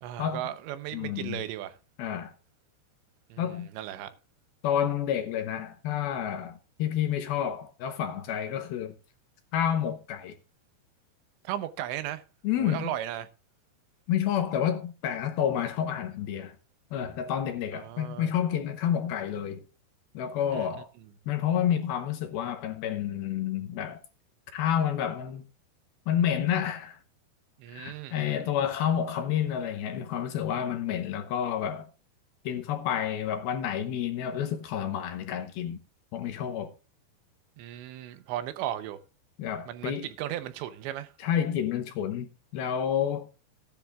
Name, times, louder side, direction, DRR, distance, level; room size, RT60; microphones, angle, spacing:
voice 1, 0.0-1.8 3.3-4.2 11.4-12.2 12.6-13.3 17.7-18.3 20.5-20.7 27.6-28.4 37.6-39.0 39.7-41.1, right 12 dB, 90° right, 3.2 m, -36 dB
voice 2, 0.9-1.4 2.0-2.3 3.4-3.7 4.6-8.9 9.5-10.3 12.4-12.9 14.1-16.5 16.9-19.6 20.1-20.9 21.3-24.0 24.5-25.4 26.1-27.0 27.7-31.9 32.4-35.8 36.1-36.7 39.4-40.1 41.2-43.3, left 9 dB, 75° left, 2.6 m, -29 dB
17.0 x 10.0 x 2.4 m
omnidirectional pair, 5.0 m